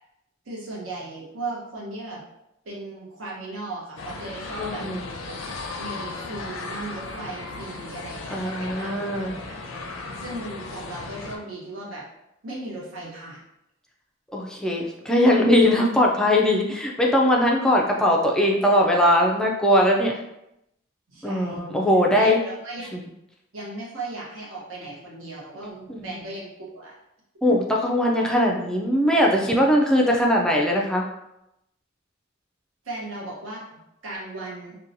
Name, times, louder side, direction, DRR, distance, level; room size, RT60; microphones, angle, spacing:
voice 1, 0.4-2.2 2.6-4.9 5.8-9.6 10.1-12.0 12.4-13.4 21.1-21.8 22.1-22.9 23.5-27.0 27.5-27.6 32.8-33.6 34.0-34.8, right 2 dB, 75° right, -5 dB, 0.9 m, -36 dB
sound 1, 4.0-11.4, left 3 dB, 70° left, 0.4 m, -36 dB
voice 2, 4.6-5.0 8.3-9.3 14.3-20.2 21.2-22.4 22.9-23.0 25.9-26.0 27.4-31.1, left 1 dB, 5° left, -1 dB, 0.3 m, -20 dB
2.8 x 2.2 x 2.6 m, 0.86 s
head